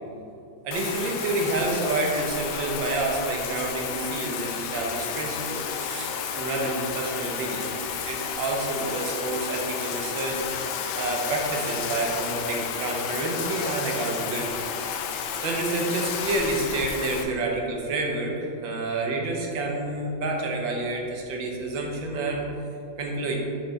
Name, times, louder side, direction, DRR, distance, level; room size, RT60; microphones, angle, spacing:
voice 1, 0.6-10.4 11.0-14.6 15.4-22.5 23.0-23.4, right 2 dB, 75° right, 0 dB, 1.6 m, -29 dB
Bathtub (filling or washing), 0.7-17.2, left 7 dB, 85° left, 1.4 m, -32 dB
6.8 x 6.0 x 3.8 m, 2.7 s
omnidirectional pair, 2.2 m